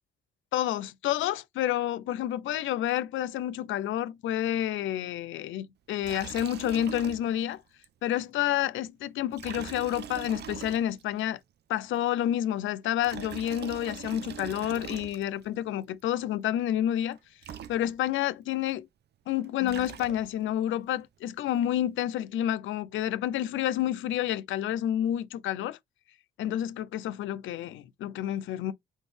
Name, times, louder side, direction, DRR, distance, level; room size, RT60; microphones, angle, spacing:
voice 1, 0.5-7.6 8.0-11.4 11.7-17.2 17.7-18.8 19.3-25.8 26.4-28.7, left 12 dB, 80° left, 0.6 m, -29 dB
Liquid, 6.0-7.5 7.8-7.9 9.3-11.2 12.8-15.5 17.1-17.2 17.4-18.2 19.4-20.5, right 9 dB, 55° right, 0.6 m, -42 dB
4.0 x 4.0 x 3.3 m
cardioid pair, 90°, 20 cm